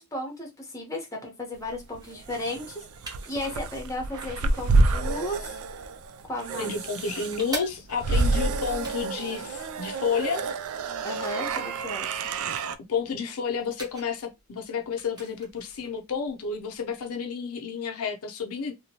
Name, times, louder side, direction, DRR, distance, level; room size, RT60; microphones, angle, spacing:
voice 1, 0.0-2.8 3.3-5.6 6.3-6.7 11.0-12.1, left 1 dB, 15° left, 0.9 m, -34 dB
sound 1, 1.7-12.8, right 3 dB, 75° right, 0.3 m, -28 dB
sound 2, 1.9-17.1, right 2 dB, 20° right, 0.7 m, -47 dB
voice 2, 6.6-10.5 12.9-18.7, left 6 dB, 80° left, 0.5 m, -31 dB
2.9 x 2.2 x 2.8 m
head